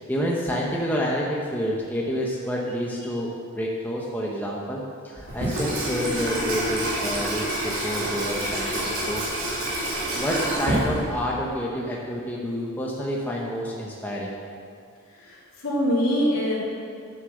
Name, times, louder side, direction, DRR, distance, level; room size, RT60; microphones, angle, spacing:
voice 1, 0.0-8.8 9.1-9.8 10.1-14.4, equal, 10° left, -4 dB, 0.9 m, -29 dB
Water tap faucet / Sink (filling or washing), 5.2-11.4, right 1 dB, 65° right, 3.1 m, -27 dB
voice 2, 15.2-16.6, equal, 70° left, -6 dB, 3.1 m, -24 dB
9.7 x 7.5 x 6.4 m, 2.3 s
head